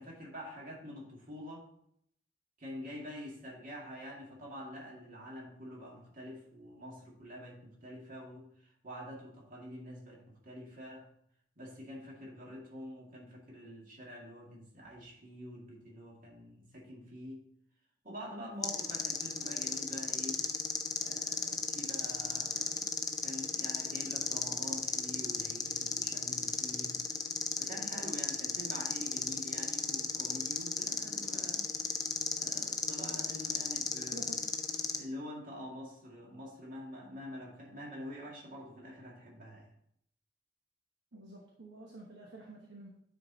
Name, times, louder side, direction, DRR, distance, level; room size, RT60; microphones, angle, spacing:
voice 1, 0.0-1.7 2.6-11.1 11.6-17.5 18.0-20.5 21.0-22.9 23.2-27.0 27.6-31.7 32.4-34.2 35.0-39.7, equal, 45° right, -3 dB, 2.2 m, -46 dB
sound 1, 18.6-35.0, left 5 dB, 20° left, 0.5 m, -35 dB
voice 2, 34.1-34.4 41.1-42.9, right 1 dB, 60° right, -2 dB, 1.1 m, -49 dB
9.4 x 4.5 x 4.0 m, 0.71 s
head